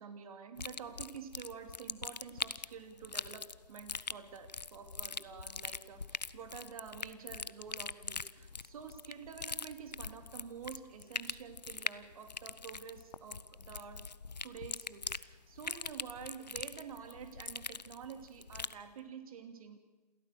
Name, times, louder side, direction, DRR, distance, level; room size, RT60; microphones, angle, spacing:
voice 1, 0.0-14.1 14.4-19.8, right 7 dB, 55° right, 8 dB, 2.8 m, -49 dB
sound 1, 0.6-18.8, left 5 dB, 90° left, 0.7 m, -42 dB
28.0 x 13.5 x 6.8 m, 1.2 s
figure-of-eight pair, 120°, 21 cm